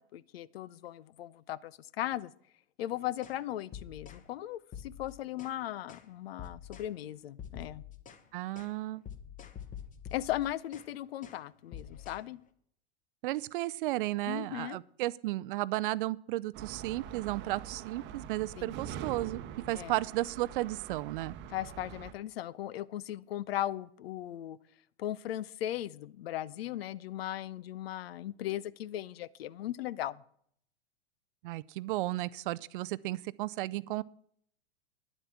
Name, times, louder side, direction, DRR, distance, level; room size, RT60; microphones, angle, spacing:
voice 1, 0.0-2.3 2.8-7.8 10.1-12.4 14.3-14.8 18.6-18.7 19.7-19.9 21.5-24.6 25.0-30.2, left 13 dB, 65° left, 21 dB, 0.6 m, -37 dB
sound 1, 3.2-3.4 3.7-4.2 4.7-5.6 5.9-6.1 6.4-6.9 7.4-8.2 8.6-8.7 9.1-10.9 11.2-11.4 11.7-12.2, left 8 dB, 25° left, 1.1 m, -47 dB
voice 2, 8.3-9.0 13.2-19.4 19.7-21.3 31.4-34.0, right 17 dB, 50° right, 20 dB, 0.5 m, -34 dB
sound 2, 16.5-22.1, right 9 dB, 35° right, 0.9 m, -44 dB
10.0 x 8.0 x 7.2 m, 0.66 s
hypercardioid pair, 100°, 33 cm